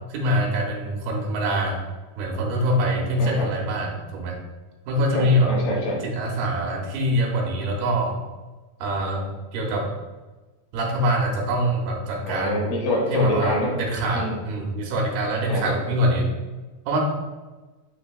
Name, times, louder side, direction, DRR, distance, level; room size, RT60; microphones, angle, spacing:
voice 1, 0.1-1.8 2.2-4.4 4.9-5.5 6.0-8.2 8.8-9.3 9.5-9.9 10.7-12.7 13.1-16.3 16.9-17.0, equal, 85° right, 0 dB, 2.7 m, -24 dB
voice 2, 5.1-6.0 12.3-13.8 14.1-14.4 15.5-15.8, left 1 dB, 70° left, -3 dB, 2.3 m, -26 dB
8.2 x 2.9 x 2.2 m, 1.2 s
omnidirectional pair, 4.4 m